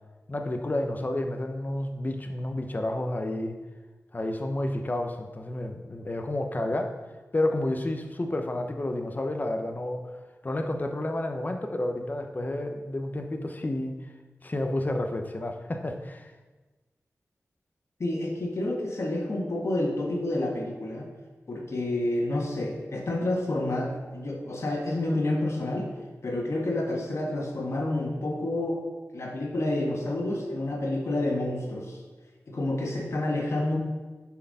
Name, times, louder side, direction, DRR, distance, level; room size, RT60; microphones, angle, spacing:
voice 1, 0.3-3.6 4.1-6.9 7.3-10.0 10.4-14.0 14.4-16.3, left 1 dB, 35° left, 4 dB, 0.8 m, -30 dB
voice 2, 18.0-21.1 21.5-25.9 26.2-28.8 29.1-32.0 32.5-33.8, left 1 dB, 60° left, -1 dB, 1.5 m, -29 dB
7.0 x 4.7 x 5.4 m, 1.2 s
wide cardioid pair, 80°, 5 cm